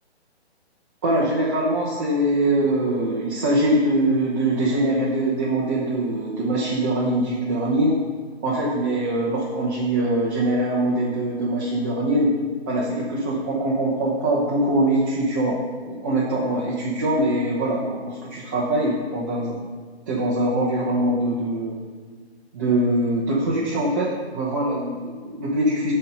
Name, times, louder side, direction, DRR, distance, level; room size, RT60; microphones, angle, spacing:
voice 1, 1.0-7.9 8.4-12.3 12.7-15.6 15.8-19.6 20.1-21.7 22.5-25.9, right 1 dB, 20° right, -6 dB, 0.8 m, -23 dB
9.7 x 4.4 x 5.3 m, 1.5 s
hypercardioid pair, 165°, 33 cm